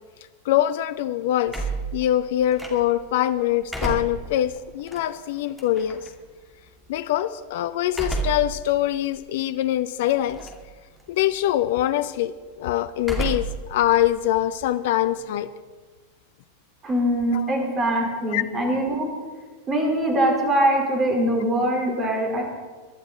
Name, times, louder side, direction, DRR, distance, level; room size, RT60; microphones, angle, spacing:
voice 1, 0.4-1.6 1.9-6.0 6.9-10.5 11.1-15.5 17.3-17.5 18.3-18.4, left 12 dB, 55° left, 13 dB, 0.5 m, -23 dB
sound 1, 1.5-3.1 3.5-6.1 7.9-8.6 9.1-9.2 10.2-10.7 11.0-11.4 13.0-13.7 14.0-15.4, right 3 dB, 5° right, 2.5 m, -31 dB
voice 2, 16.8-19.1 19.7-22.4, right 1 dB, 25° right, 1 dB, 4.5 m, -22 dB
23.5 x 11.5 x 4.2 m, 1.5 s
figure-of-eight pair, 90°, 0 cm